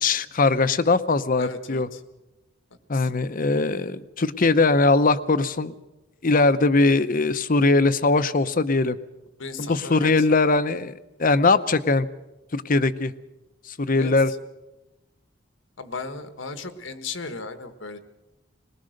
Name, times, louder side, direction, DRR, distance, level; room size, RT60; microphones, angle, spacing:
voice 1, 0.0-1.9 2.9-5.7 6.2-9.0 9.6-10.9 11.2-12.1 12.5-13.1 13.7-14.3, left 3 dB, 45° left, 13 dB, 0.8 m, -21 dB
voice 2, 1.4-2.0 2.9-3.1 9.4-10.3 14.0-14.4 15.8-18.0, left 4 dB, 85° left, 9 dB, 1.5 m, -36 dB
21.0 x 20.5 x 6.6 m, 1.0 s
head